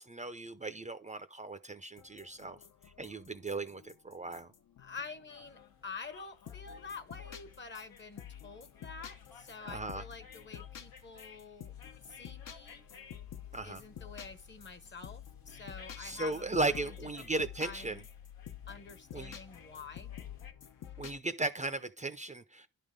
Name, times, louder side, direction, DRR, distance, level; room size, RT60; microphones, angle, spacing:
voice 1, 0.1-2.6 3.0-4.5 9.7-10.0 13.5-13.8 16.0-18.0 19.1-19.4 21.0-22.7, right 2 dB, 20° right, 0.6 m, -36 dB
sound 1, 2.0-5.9 6.5-21.2, left 10 dB, 60° left, 1.0 m, -50 dB
voice 2, 4.8-11.7 12.1-12.9 13.6-18.1 18.7-20.2, left 4 dB, 30° left, 1.0 m, -48 dB
sound 2, 5.3-20.5, left 7 dB, 80° left, 1.3 m, -55 dB
11.0 x 3.7 x 5.2 m
cardioid pair, 100°, 35 cm